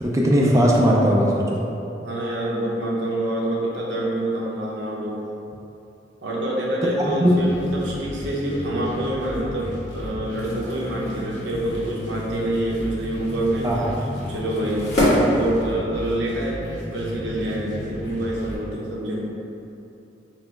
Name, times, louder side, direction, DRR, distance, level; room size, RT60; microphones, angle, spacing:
voice 1, 0.0-1.6 7.0-7.4 13.6-14.0, equal, 20° right, -3 dB, 0.3 m, -19 dB
voice 2, 1.9-5.2 6.2-13.9 14.3-14.9 15.2-16.6 16.9-19.3, right 1 dB, 85° right, -5 dB, 0.8 m, -26 dB
sound 1, 7.3-18.6, equal, 90° left, 1.1 m, -34 dB
sound 2, 10.2-16.2, equal, 40° left, 1.3 m, -28 dB
4.3 x 2.0 x 4.5 m, 2.8 s
head